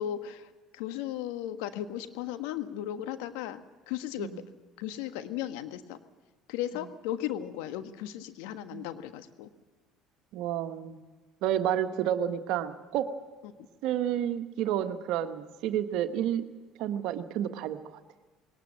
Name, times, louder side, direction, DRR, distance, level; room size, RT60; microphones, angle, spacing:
voice 1, 0.0-3.6 3.9-4.3 4.8-6.0 6.5-9.5, left 11 dB, 75° left, 9 dB, 1.4 m, -36 dB
voice 2, 10.3-11.0 11.4-13.1 13.8-16.4 16.8-17.8, right 10 dB, 65° right, 9 dB, 1.3 m, -30 dB
21.0 x 19.0 x 7.5 m, 1.3 s
hypercardioid pair, 65°, 0 cm